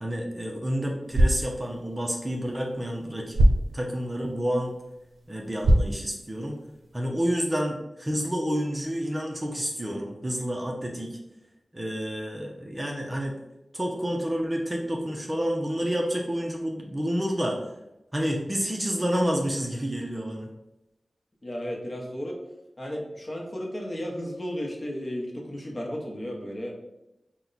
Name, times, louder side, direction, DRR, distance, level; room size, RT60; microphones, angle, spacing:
voice 1, 0.0-3.4 3.7-4.7 5.3-6.6 6.9-11.2 11.7-13.3 13.7-17.6 18.1-20.5, equal, 20° right, 0 dB, 0.6 m, -29 dB
sound 1, 1.0-7.0, right 1 dB, 85° right, 0.6 m, -27 dB
voice 2, 21.4-22.4 22.8-26.7, equal, 35° left, -1 dB, 0.9 m, -34 dB
4.3 x 2.2 x 3.9 m, 0.92 s
wide cardioid pair, 75°, 0 cm